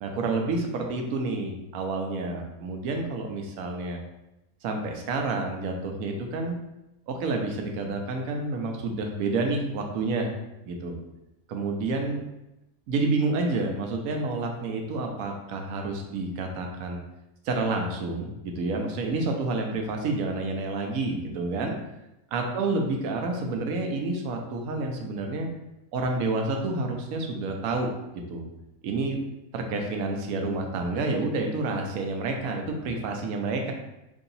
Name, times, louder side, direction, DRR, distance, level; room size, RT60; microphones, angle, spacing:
voice 1, 0.0-4.0 4.6-6.5 7.1-10.3 10.7-10.9 11.5-12.2 12.9-17.0 17.4-21.7 22.3-25.5 25.9-27.9 28.3-28.4 28.8-29.2 29.5-33.7, right 3 dB, 80° right, 2 dB, 1.1 m, -29 dB
3.0 x 2.8 x 3.9 m, 0.91 s
omnidirectional pair, 1.5 m